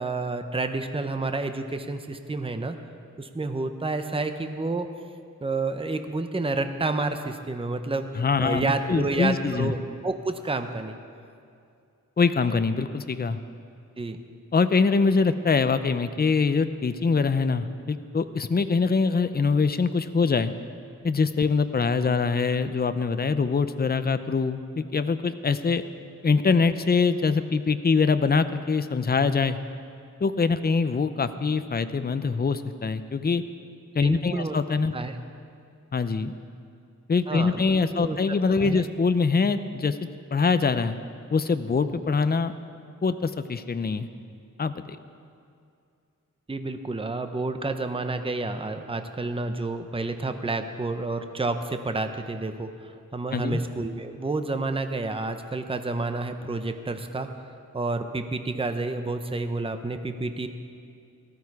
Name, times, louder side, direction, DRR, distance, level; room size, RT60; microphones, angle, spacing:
voice 1, 0.0-2.8 3.2-4.9 5.4-11.0 14.0-14.2 34.0-34.6 34.9-35.1 37.3-37.6 37.9-38.2 38.6-38.8 46.5-57.3 57.7-60.5, right 3 dB, 15° right, 7 dB, 0.7 m, -29 dB
voice 2, 8.2-9.7 12.2-13.4 14.5-20.5 21.0-25.8 26.2-29.6 30.2-33.4 33.9-34.9 35.9-36.3 37.1-40.0 40.3-41.0 41.3-42.5 43.0-44.1 44.6-45.0 53.3-53.6, left 4 dB, 30° left, 11 dB, 0.5 m, -24 dB
17.5 x 13.5 x 4.8 m, 2.4 s
wide cardioid pair, 110°, 32 cm